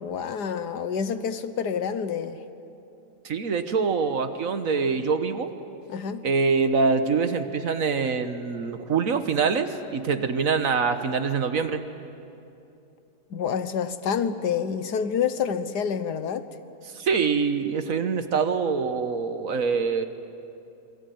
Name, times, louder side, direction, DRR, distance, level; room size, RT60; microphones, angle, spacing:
voice 1, 0.0-2.4 5.9-6.3 13.3-16.4, left 7 dB, 85° left, 11 dB, 1.7 m, -28 dB
voice 2, 3.2-5.5 6.2-11.8 16.9-20.1, right 5 dB, 60° right, 9 dB, 1.6 m, -24 dB
27.0 x 22.5 x 9.3 m, 2.7 s
omnidirectional pair, 1.7 m